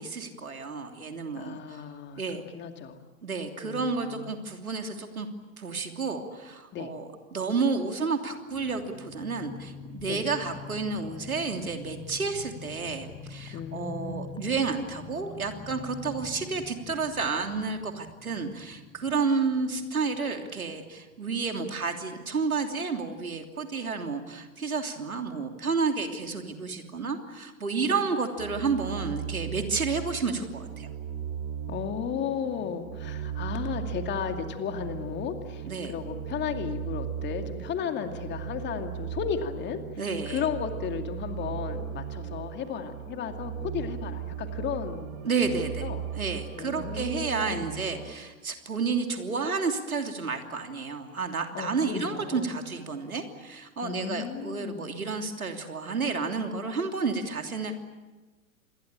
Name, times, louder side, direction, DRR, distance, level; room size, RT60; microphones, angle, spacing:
voice 1, 0.0-1.8 2.2-2.4 3.2-5.3 5.6-7.0 7.3-30.9 35.6-35.9 40.0-40.4 45.2-45.9 46.1-57.7, right 4 dB, 80° right, 5 dB, 3.2 m, -31 dB
voice 2, 1.4-3.0 3.6-4.4 6.7-6.9 10.0-10.2 13.5-14.5 27.9-28.0 31.7-45.1 45.6-46.0 46.6-47.7 51.5-52.5 53.8-55.0, left 8 dB, 25° left, 6 dB, 2.4 m, -35 dB
sound 1, 8.5-20.9 21.1-21.2 21.5-21.8, left 6 dB, 10° left, 6.2 m, -45 dB
sound 2, 28.4-48.1, right 9 dB, 50° right, 3.6 m, -37 dB
27.5 x 22.0 x 8.8 m, 1.2 s
figure-of-eight pair, 100°, 42 cm